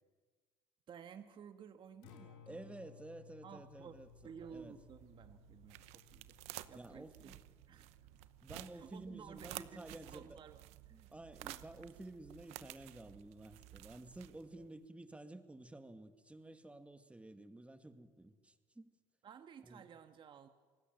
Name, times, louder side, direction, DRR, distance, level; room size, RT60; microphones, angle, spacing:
voice 1, 0.9-2.6 3.4-4.0 4.2-6.3 6.7-7.3 7.7-7.9 8.7-11.1 19.2-20.5, right 7 dB, 45° right, 7 dB, 1.6 m, -54 dB
Acoustic guitar, 1.9-10.1, left 9 dB, 85° left, 3.8 m, -62 dB
voice 2, 2.5-4.1 4.5-4.8 6.7-7.4 8.4-10.4 10.9-18.9 19.6-19.9, right 2 dB, 10° right, 8 dB, 2.2 m, -52 dB
sound 1, 3.7-14.7, right 17 dB, 75° right, 0.9 m, -53 dB
27.5 x 19.5 x 7.9 m, 1.5 s
supercardioid pair, 80°, 11 cm